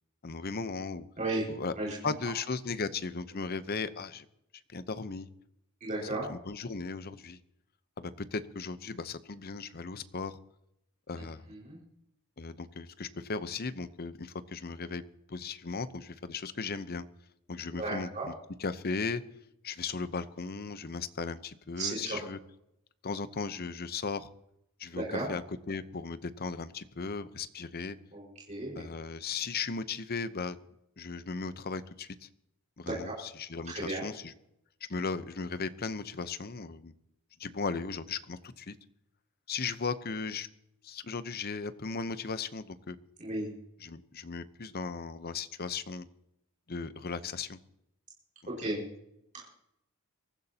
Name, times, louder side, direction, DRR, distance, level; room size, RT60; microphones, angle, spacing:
voice 1, 0.2-1.1 1.5-1.7 2.0-4.2 4.7-5.3 6.0-7.4 8.0-10.4 11.1-11.5 12.4-15.0 15.3-17.0 17.5-18.3 18.6-19.2 19.6-22.4 23.0-24.3 24.8-28.0 28.8-30.6 31.0-32.3 32.8-34.3 34.9-36.9 37.4-38.7 39.5-40.5 40.8-43.0 43.8-46.1 46.7-47.6 48.6-48.7, left 4 dB, 45° left, 13 dB, 0.8 m, -36 dB
voice 2, 5.8-6.3 11.5-11.8 17.7-18.3 21.8-22.2 24.9-25.3 28.1-28.9 32.9-33.1 33.6-34.0 43.2-43.5 48.4-48.8 49.3-49.4, right 2 dB, 35° right, -5 dB, 5.0 m, -34 dB
23.5 x 14.5 x 2.9 m, 0.80 s
head